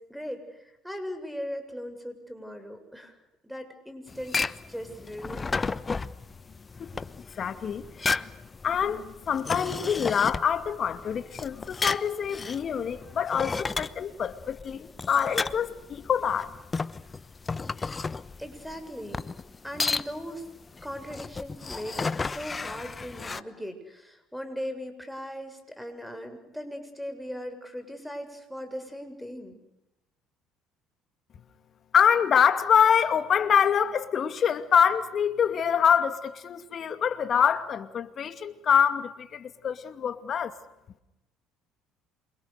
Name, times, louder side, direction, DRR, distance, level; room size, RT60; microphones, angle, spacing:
voice 1, 0.0-3.1 3.4-4.4 4.7-5.5 18.4-19.3 19.6-20.5 20.8-29.6, equal, ahead, 7.0 m, -39 dB
sound 1, 4.1-23.4, left 4 dB, 25° left, 1.0 m, -33 dB
voice 2, 7.4-8.3 8.6-16.5 31.9-40.6, left 8 dB, 45° left, 2.3 m, -25 dB
28.0 x 26.0 x 6.7 m
hypercardioid pair, 65°, 0 cm